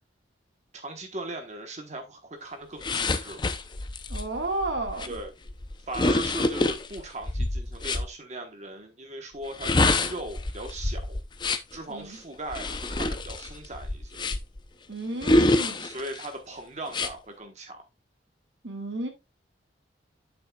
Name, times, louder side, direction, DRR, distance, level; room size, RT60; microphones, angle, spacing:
voice 1, 0.7-3.4 5.1-5.3 5.9-11.2 11.7-14.2 15.8-17.8, right 2 dB, 40° right, 1.1 m, -39 dB
sound 1, 2.8-8.1 9.4-11.8 12.5-14.6 15.2-16.3 16.9-17.1, left 2 dB, 25° left, 0.6 m, -27 dB
voice 2, 4.1-5.2 11.9-12.2 14.9-15.9 18.6-19.1, right 2 dB, 70° right, 1.7 m, -32 dB
8.7 x 7.2 x 2.3 m
head